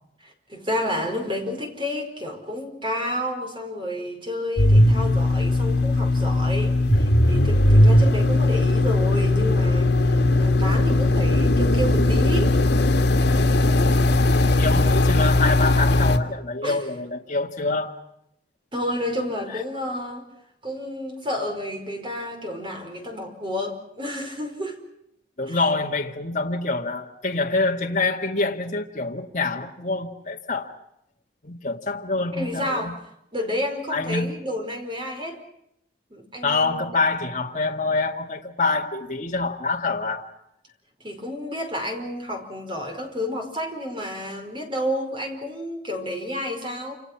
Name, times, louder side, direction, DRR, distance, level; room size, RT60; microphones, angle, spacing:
voice 1, 0.2-12.6 16.6-16.8 18.7-20.3 20.6-24.8 25.5-25.6 32.3-33.0 33.3-35.4 36.1-37.0 41.0-47.0, left 1 dB, 30° right, 5.1 m, -30 dB
sound 1, 4.6-16.2, left 1 dB, 75° left, 2.0 m, -18 dB
voice 2, 14.6-17.9 19.5-19.6 25.4-30.7 31.4-32.9 33.9-34.3 36.4-40.3, left 3 dB, 40° left, 2.1 m, -26 dB
28.0 x 28.0 x 6.0 m
head